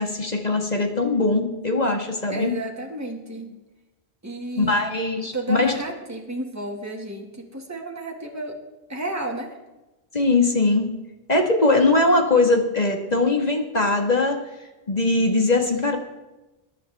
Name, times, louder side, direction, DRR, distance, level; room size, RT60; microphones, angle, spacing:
voice 1, 0.0-2.5 4.6-5.8 10.1-10.9 11.3-14.4 14.9-16.0, left 2 dB, 35° left, 2 dB, 1.9 m, -21 dB
voice 2, 2.3-3.6 4.2-4.8 5.3-8.6 8.9-9.5, right 1 dB, 15° right, 0 dB, 2.1 m, -32 dB
22.0 x 11.0 x 3.6 m, 1.0 s
omnidirectional pair, 1.2 m